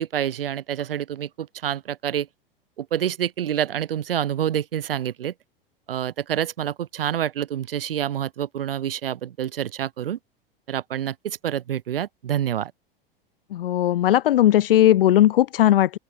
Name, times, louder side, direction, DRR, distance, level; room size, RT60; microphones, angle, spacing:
voice 1, 0.0-2.3 2.8-5.3 5.9-10.2 10.7-12.7, right 10 dB, 70° right, 0.9 m, -27 dB
voice 2, 13.5-16.0, left 12 dB, 70° left, 0.5 m, -18 dB
open air
figure-of-eight pair, 90°, 29 cm